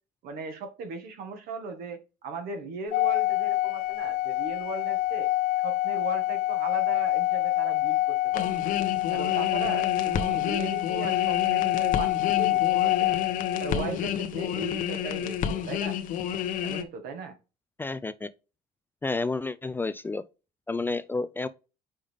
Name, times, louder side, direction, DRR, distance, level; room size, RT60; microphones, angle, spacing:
voice 1, 0.2-5.3 5.6-8.7 9.1-13.2 13.6-16.0 16.6-17.4, right 4 dB, 75° right, 1.9 m, -38 dB
Organ, 2.9-13.8, left 16 dB, 90° left, 0.4 m, -26 dB
sound 1, 8.3-16.8, left 9 dB, 60° left, 0.9 m, -30 dB
voice 2, 17.8-18.3 19.0-20.2 20.7-21.5, left 3 dB, 15° left, 0.3 m, -30 dB
5.4 x 5.0 x 3.5 m
cardioid pair, 135°, 16 cm